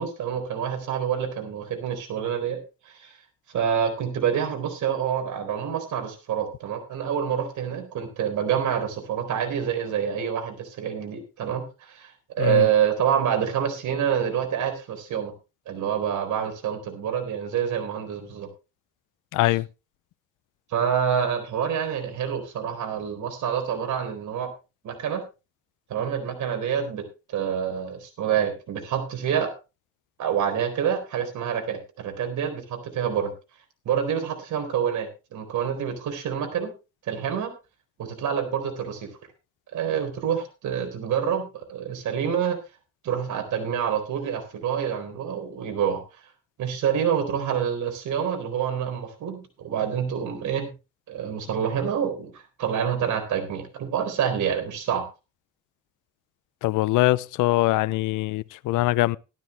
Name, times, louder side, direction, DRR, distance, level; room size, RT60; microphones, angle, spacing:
voice 1, 0.0-2.6 2.9-3.1 3.5-12.1 12.4-15.3 15.7-18.5 20.7-24.5 24.8-25.2 25.9-29.5 30.2-33.3 33.9-36.7 37.1-37.5 38.0-39.1 39.7-42.6 43.0-46.0 46.6-50.7 51.1-55.1, right 8 dB, 75° right, 4.2 m, -27 dB
voice 2, 19.3-19.7 56.6-59.2, left 18 dB, 90° left, 0.6 m, -22 dB
14.0 x 12.0 x 3.3 m
cardioid pair, 90°, 30 cm